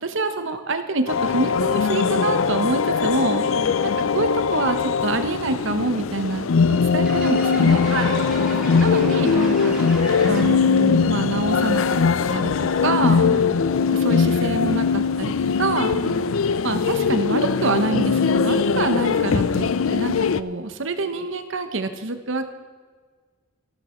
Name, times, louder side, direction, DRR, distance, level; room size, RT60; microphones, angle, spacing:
voice 1, 0.0-3.4 3.8-6.5 6.9-7.8 8.8-9.9 10.3-12.0 12.3-13.3 13.9-15.3 15.6-16.0 16.6-22.5, right 2 dB, 65° right, 9 dB, 1.0 m, -26 dB
sound 1, 1.1-20.4, left 5 dB, 70° left, 0.5 m, -21 dB
voice 2, 3.4-3.8 7.9-8.7 13.1-13.6 15.9-16.4, right 3 dB, 80° right, 0 dB, 2.8 m, -31 dB
sound 2, 7.0-10.8, right 1 dB, 5° right, 3.0 m, -34 dB
14.5 x 12.5 x 4.4 m, 1.5 s
head